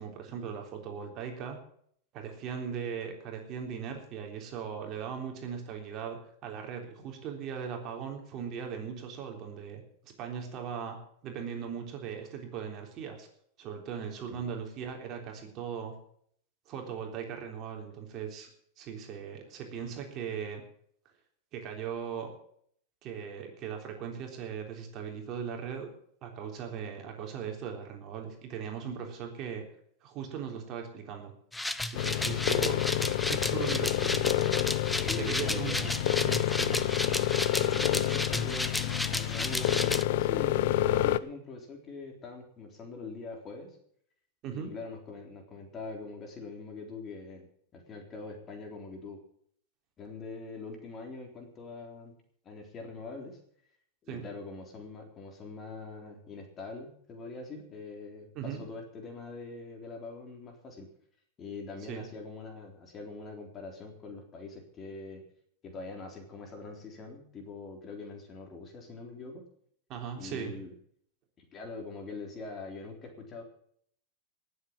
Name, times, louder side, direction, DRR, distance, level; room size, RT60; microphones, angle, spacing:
voice 1, 0.0-1.6 2.1-13.3 13.6-16.0 16.7-18.5 18.8-20.6 21.5-22.3 23.0-25.9 26.2-29.6 30.0-31.3 31.8-34.2 35.2-35.9 36.2-36.8 44.4-44.7 54.1-54.3 58.4-58.6 61.9-62.1 69.9-70.6, right 7 dB, 40° right, 3 dB, 3.5 m, -39 dB
sound 1, 31.5-40.0, left 1 dB, 5° left, 0.7 m, -33 dB
sound 2, 31.9-41.2, left 13 dB, 65° left, 0.7 m, -28 dB
voice 2, 34.9-36.0 37.5-43.8 44.5-47.5 47.7-49.2 50.0-52.1 52.4-53.4 54.0-60.9 61.4-65.2 65.6-69.4 70.1-70.7 71.4-73.4, left 3 dB, 25° left, 2 dB, 3.7 m, -43 dB
18.5 x 7.7 x 7.3 m, 0.64 s
supercardioid pair, 140°, 0 cm